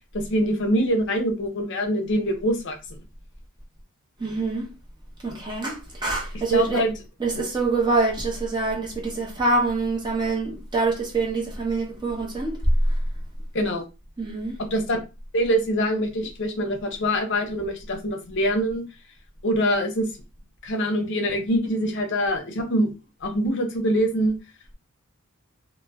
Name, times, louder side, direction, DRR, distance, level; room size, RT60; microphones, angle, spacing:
voice 1, 0.1-2.8 6.5-6.9 13.5-13.8 14.6-15.0 15.3-18.8 19.4-20.1 20.6-22.9 23.2-24.4, equal, 55° left, 0.6 m, -24 dB
voice 2, 4.2-4.7 5.2-6.9 7.2-12.6 14.2-14.6, right 3 dB, 20° right, 0.7 m, -25 dB
2.5 x 2.1 x 3.3 m
head